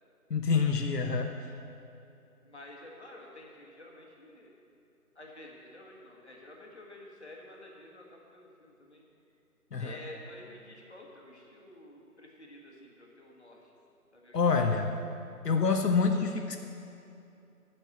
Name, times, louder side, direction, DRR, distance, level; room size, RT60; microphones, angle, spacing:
voice 1, 0.3-1.3 9.7-10.0 14.3-14.9 15.4-16.6, left 5 dB, 90° left, 5 dB, 0.8 m, -27 dB
voice 2, 2.4-4.5 5.1-9.0 9.8-13.7 14.1-14.4, left 1 dB, 45° left, -2 dB, 1.6 m, -50 dB
9.0 x 6.0 x 7.7 m, 2.7 s
figure-of-eight pair, 175°, 46 cm